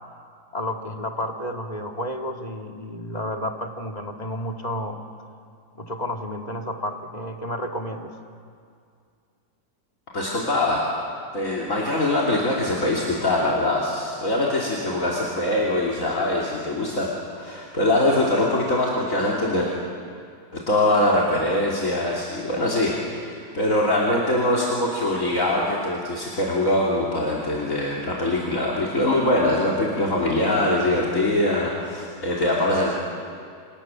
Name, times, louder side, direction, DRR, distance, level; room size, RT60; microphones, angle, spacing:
voice 1, 0.5-5.0 5.8-8.2, left 1 dB, 25° left, 2 dB, 2.2 m, -31 dB
voice 2, 10.1-10.8 11.3-17.1 17.4-19.7 20.5-32.9, left 1 dB, 55° left, -4 dB, 3.6 m, -23 dB
29.5 x 27.5 x 7.3 m, 2.3 s
omnidirectional pair, 1.7 m